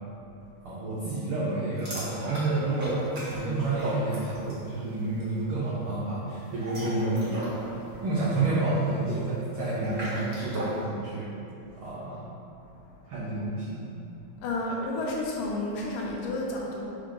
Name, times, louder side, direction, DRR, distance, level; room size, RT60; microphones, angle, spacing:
voice 1, 0.6-7.4 8.0-11.3 11.8-12.2 13.0-13.8, right 2 dB, 90° right, -8 dB, 1.1 m, -29 dB
sound 1, 1.8-4.7 5.0-5.3 6.4-10.8, right 1 dB, 55° right, 0.7 m, -37 dB
voice 2, 14.4-16.9, left 2 dB, 85° left, -3 dB, 2.5 m, -31 dB
5.0 x 3.8 x 5.2 m, 2.7 s
omnidirectional pair, 3.7 m